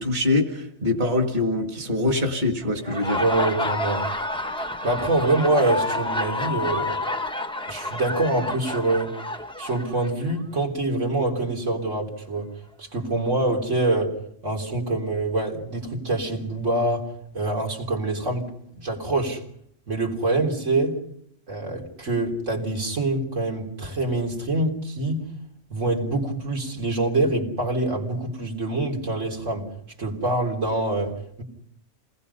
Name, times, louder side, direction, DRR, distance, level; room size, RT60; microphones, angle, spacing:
voice 1, 0.0-3.2, left 2 dB, 40° right, 3 dB, 2.3 m, -24 dB
Laughter, 2.7-10.4, left 1 dB, 5° left, 1.0 m, -29 dB
voice 2, 3.2-4.1 4.8-7.1 7.7-9.1 9.6-12.5 12.8-14.2 14.4-18.5 18.8-19.4 19.9-21.0 21.5-25.2 25.7-29.7 30.0-31.4, right 2 dB, 80° right, 1 dB, 3.9 m, -25 dB
28.5 x 20.0 x 5.6 m, 0.69 s
omnidirectional pair, 1.3 m